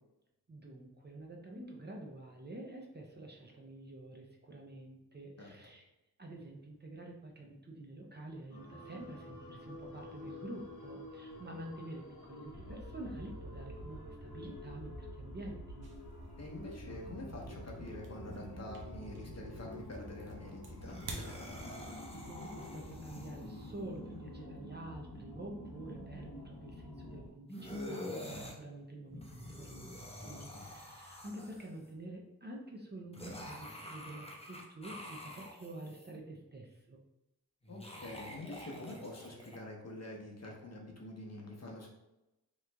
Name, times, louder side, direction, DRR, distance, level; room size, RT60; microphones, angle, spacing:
voice 1, 0.5-5.9 6.2-15.9 22.0-37.0, right 1 dB, 25° right, 0 dB, 0.6 m, -48 dB
sound 1, 8.5-27.3, left 1 dB, 75° left, 0.9 m, -48 dB
sound 2, 15.8-22.2, right 3 dB, 70° right, 0.7 m, -52 dB
voice 2, 16.4-21.0 30.1-30.6 37.7-41.9, left 1 dB, 40° left, -1 dB, 0.9 m, -46 dB
sound 3, 20.7-23.8 27.5-28.6 29.1-31.9 33.1-36.1 37.6-39.6, left 1 dB, 15° left, 0.7 m, -47 dB
3.1 x 2.4 x 3.3 m, 0.94 s
cardioid pair, 45°, 38 cm